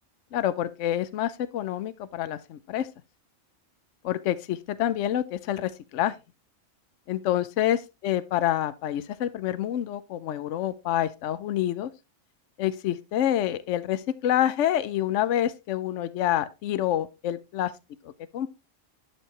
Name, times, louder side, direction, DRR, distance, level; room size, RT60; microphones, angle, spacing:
voice 1, 0.3-2.9 4.0-6.1 7.1-11.9 12.6-17.7 18.0-18.5, left 12 dB, 70° left, 0.9 m, -27 dB
11.5 x 5.0 x 2.9 m
omnidirectional pair, 1.4 m